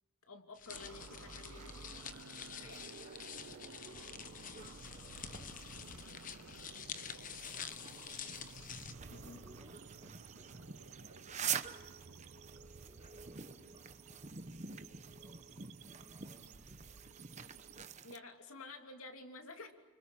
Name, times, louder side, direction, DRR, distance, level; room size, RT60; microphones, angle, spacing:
voice 1, 0.3-1.9 2.6-2.8 9.1-9.4 18.0-19.7, left 3 dB, 90° left, 5 dB, 3.0 m, -51 dB
sound 1, 0.6-8.9, left 7 dB, 40° left, 1.1 m, -48 dB
sound 2, 0.7-18.2, right 7 dB, 35° right, 1.0 m, -48 dB
sound 3, 0.7-17.9, right 4 dB, 90° right, 0.8 m, -55 dB
voice 2, 2.1-14.8 15.1-17.7, right 1 dB, 15° right, -1 dB, 7.2 m, -65 dB
30.0 x 25.5 x 7.4 m, 1.1 s
head